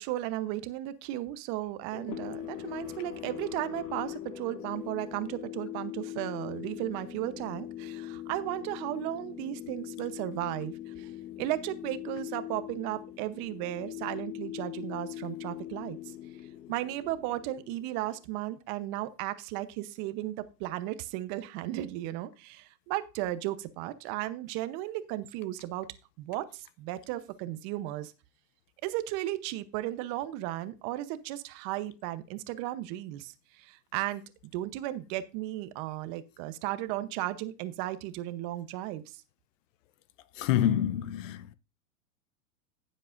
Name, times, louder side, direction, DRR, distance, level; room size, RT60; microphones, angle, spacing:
voice 1, 0.0-11.1 11.4-16.0 16.7-25.9 26.2-28.1 28.8-33.3 33.6-34.2 34.5-39.0, right 15 dB, 40° right, 0.9 m, -35 dB
sound 1, 1.9-18.2, left 12 dB, 85° left, 2.0 m, -41 dB
voice 2, 40.4-41.5, left 11 dB, 55° left, 0.8 m, -27 dB
15.0 x 7.6 x 2.5 m
hypercardioid pair, 130°, 46 cm